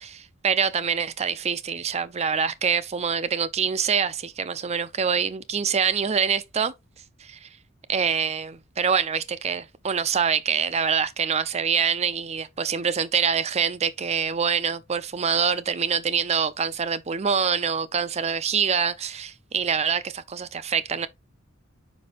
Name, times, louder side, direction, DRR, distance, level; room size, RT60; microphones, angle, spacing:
voice 1, 0.0-6.7 7.2-7.5 7.9-21.1, right 6 dB, 30° right, 0.5 m, -25 dB
5.2 x 5.1 x 4.0 m
head